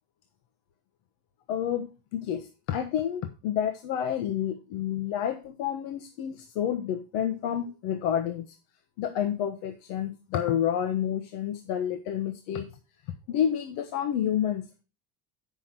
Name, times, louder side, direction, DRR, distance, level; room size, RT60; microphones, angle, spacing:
voice 1, 1.5-8.5 9.0-12.7 13.3-14.8, left 9 dB, 90° left, 8 dB, 1.2 m, -29 dB
9.0 x 6.2 x 4.4 m, 0.32 s
cardioid pair, 160°, 41 cm